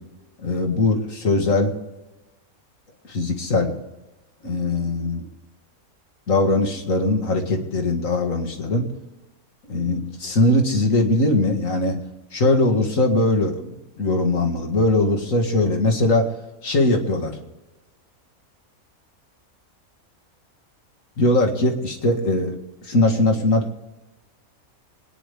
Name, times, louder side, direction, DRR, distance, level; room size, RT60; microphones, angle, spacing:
voice 1, 0.4-1.7 3.1-3.7 4.4-5.2 6.3-8.9 9.7-12.0 12.3-16.3 16.6-17.4 21.2-22.6 22.8-23.8, left 2 dB, 65° left, 2 dB, 2.3 m, -20 dB
24.0 x 10.0 x 3.4 m, 1.0 s
omnidirectional pair, 1.5 m